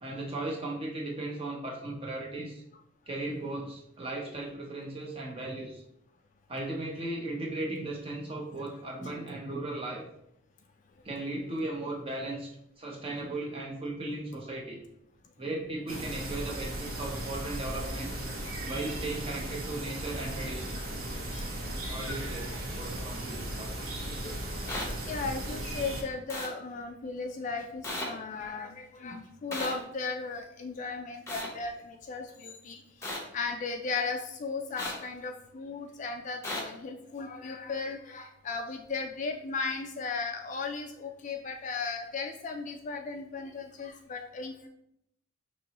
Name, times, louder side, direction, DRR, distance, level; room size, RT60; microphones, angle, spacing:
voice 1, 0.0-2.6 3.1-5.8 6.5-10.0 11.0-12.5 12.8-14.8 15.4-18.1 18.7-20.8 21.9-24.0, right 2 dB, 25° right, -1 dB, 0.8 m, -36 dB
sound 1, 15.9-26.0, right 1 dB, 75° right, 1.0 m, -36 dB
voice 2, 24.2-32.8 33.3-44.7, left 4 dB, 35° left, 5 dB, 0.3 m, -36 dB
sound 2, 24.7-24.8 26.3-26.5 27.8-28.1 29.5-29.7 31.3-31.5 33.0-33.2 34.8-34.9 36.4-36.6, left 2 dB, 15° left, 0.7 m, -34 dB
5.2 x 3.0 x 2.9 m, 0.76 s
head